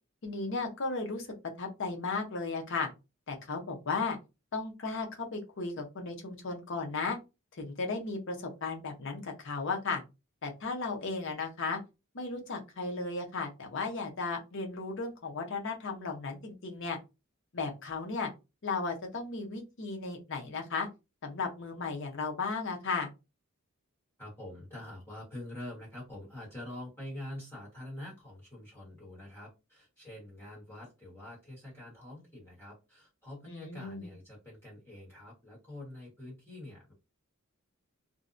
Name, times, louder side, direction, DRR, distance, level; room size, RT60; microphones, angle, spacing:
voice 1, 0.2-1.3 1.6-2.9 3.3-4.2 4.5-7.2 7.6-10.0 10.4-11.8 12.1-17.0 17.5-18.3 18.6-20.9 21.2-23.1 33.5-34.1, left 4 dB, 55° left, 2 dB, 0.6 m, -35 dB
voice 2, 24.2-36.9, left 1 dB, 10° left, -5 dB, 1.2 m, -45 dB
2.5 x 2.1 x 2.5 m, 0.27 s
head